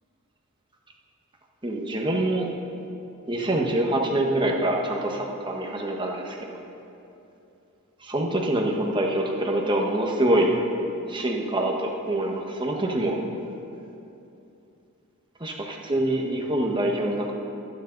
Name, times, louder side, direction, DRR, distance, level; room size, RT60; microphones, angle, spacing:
voice 1, 1.6-2.5 3.3-6.4 8.0-10.5 11.1-13.2 15.4-17.3, right 1 dB, 20° right, 0 dB, 1.3 m, -25 dB
24.5 x 9.5 x 4.0 m, 2.8 s
head